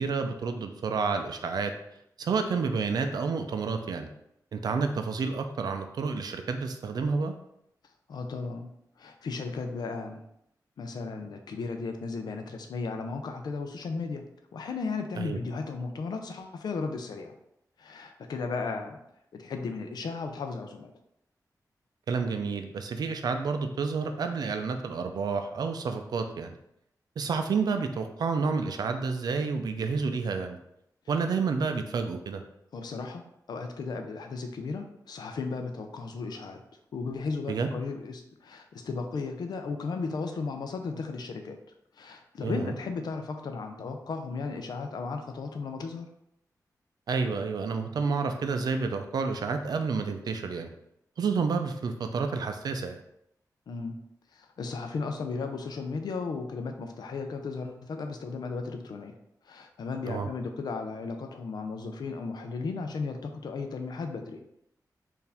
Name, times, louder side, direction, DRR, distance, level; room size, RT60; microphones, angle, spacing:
voice 1, 0.0-1.7 2.2-4.1 4.5-7.3 15.2-15.4 22.1-26.5 27.2-30.6 31.1-32.4 37.5-37.7 42.4-42.7 47.1-50.7 51.2-53.0 60.1-60.3, right 4 dB, 75° right, 6 dB, 0.5 m, -29 dB
voice 2, 8.1-8.7 9.0-10.2 10.8-14.2 14.5-17.3 17.8-19.0 19.3-20.9 32.7-33.2 33.5-36.6 36.9-41.6 42.0-46.1 53.7-54.0 54.3-59.2 59.4-64.4, left 4 dB, 90° left, 5 dB, 0.5 m, -35 dB
4.6 x 2.6 x 3.4 m, 0.78 s
wide cardioid pair, 155°, 7 cm